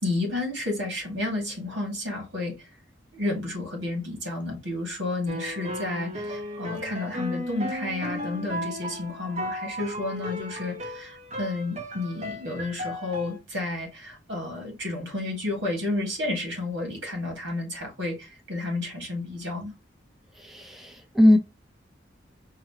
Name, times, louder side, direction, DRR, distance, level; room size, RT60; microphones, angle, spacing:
voice 1, 0.0-2.7 3.1-19.7, left 2 dB, 85° right, 2.2 m, -31 dB
sound 1, 5.3-13.4, equal, 40° right, 0.9 m, -35 dB
voice 2, 20.4-21.4, left 1 dB, ahead, 0.6 m, -20 dB
4.8 x 2.8 x 2.9 m
head